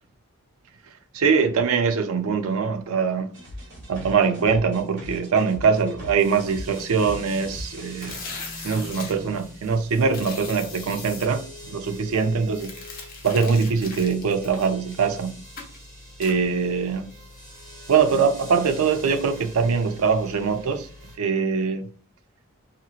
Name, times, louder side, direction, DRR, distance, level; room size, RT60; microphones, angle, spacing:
voice 1, 1.1-3.3 3.9-8.2 8.6-12.7 13.2-15.4 16.2-17.1 17.9-20.9 21.2-21.9, right 5 dB, 80° right, 0.4 m, -22 dB
sound 1, 3.3-8.7, equal, 55° right, 1.3 m, -40 dB
sound 2, 6.2-21.2, left 1 dB, 10° right, 1.3 m, -43 dB
sound 3, 7.9-9.1 10.1-11.3 12.5-15.1 15.6-15.8 16.2-16.4, left 4 dB, 40° left, 0.5 m, -39 dB
2.8 x 2.8 x 2.3 m
head